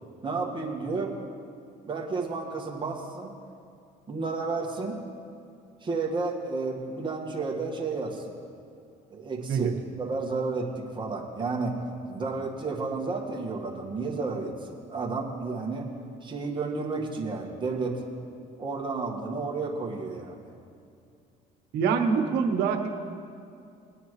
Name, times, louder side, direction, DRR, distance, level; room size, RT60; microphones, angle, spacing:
voice 1, 0.2-1.1 1.8-3.3 4.1-5.0 5.8-8.4 9.1-11.7 12.0-15.9 16.2-18.0 18.6-20.4, right 3 dB, 30° right, -2 dB, 1.8 m, -31 dB
voice 2, 21.7-22.9, right 6 dB, 85° right, 5 dB, 1.1 m, -25 dB
20.5 x 10.0 x 3.3 m, 2.4 s
cardioid pair, 110°, 17 cm